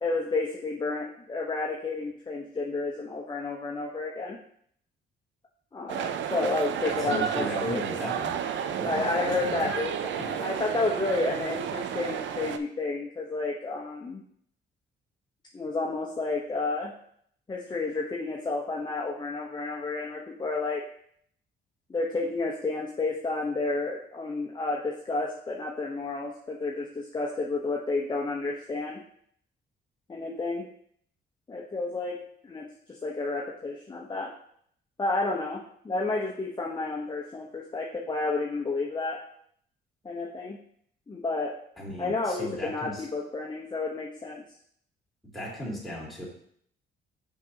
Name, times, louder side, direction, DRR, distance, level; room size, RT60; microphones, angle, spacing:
voice 1, 0.0-4.4 5.7-7.8 8.8-14.2 15.5-16.9 17.5-20.8 21.9-29.0 30.1-30.6 31.5-32.2 32.4-34.3 35.0-39.2 40.0-40.6 41.1-41.6 42.0-44.4, left 3 dB, 20° left, -3 dB, 0.9 m, -31 dB
sound 1, 5.9-12.6, right 9 dB, 70° right, 0.5 m, -32 dB
voice 2, 6.8-8.4 8.7-9.7 10.2-10.3 41.8-43.1 45.3-46.3, equal, ahead, -5 dB, 2.9 m, -36 dB
7.0 x 5.8 x 2.8 m, 0.65 s
cardioid pair, 90°, 20 cm